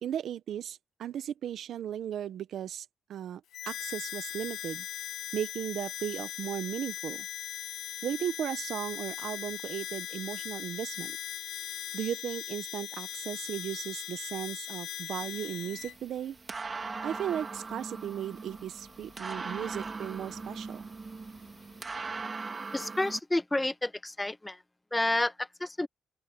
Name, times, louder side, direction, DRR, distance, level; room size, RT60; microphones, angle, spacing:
voice 1, 0.0-3.4 3.7-4.9 5.3-7.3 8.0-11.2 11.9-16.4 17.0-20.9, right 10 dB, 70° right, 0.9 m, -36 dB
Harmonica, 3.5-16.0, left 12 dB, 90° left, 0.5 m, -39 dB
sound 1, 15.2-23.2, right 4 dB, 30° right, 2.7 m, -40 dB
sound 2, 15.8-22.3, left 6 dB, 40° left, 6.1 m, -61 dB
voice 2, 22.7-24.6 24.9-25.9, left 1 dB, 10° left, 1.0 m, -30 dB
open air
cardioid pair, 110°, 0 cm